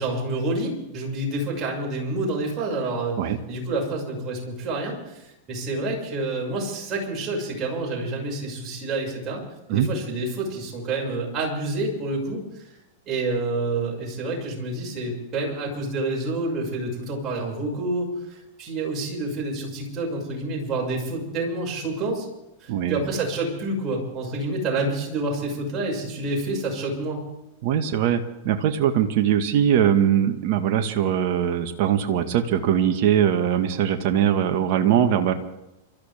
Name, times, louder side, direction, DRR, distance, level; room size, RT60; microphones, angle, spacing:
voice 1, 0.0-3.2 3.5-9.4 9.7-12.4 13.1-22.3 22.6-27.2, right 2 dB, 30° right, -1 dB, 6.5 m, -28 dB
voice 2, 22.7-23.0 27.6-35.3, right 9 dB, 50° right, 6 dB, 1.7 m, -21 dB
28.0 x 14.0 x 3.6 m, 0.93 s
hypercardioid pair, 100°, 0 cm